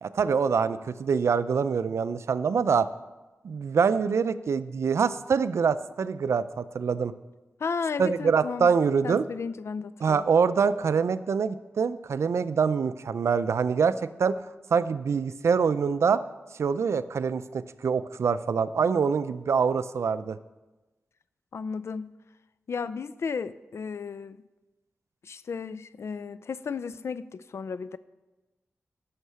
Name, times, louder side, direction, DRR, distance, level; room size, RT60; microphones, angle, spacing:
voice 1, 0.0-2.9 3.4-7.1 8.0-9.3 10.0-14.5 14.7-16.2 16.6-20.4, right 6 dB, 85° right, 14 dB, 0.4 m, -25 dB
voice 2, 7.6-8.7 9.0-10.2 21.5-22.1 22.7-24.4 25.2-28.0, left 5 dB, 75° left, 16 dB, 0.4 m, -34 dB
11.0 x 6.5 x 6.9 m, 1.1 s
wide cardioid pair, 65°, 5 cm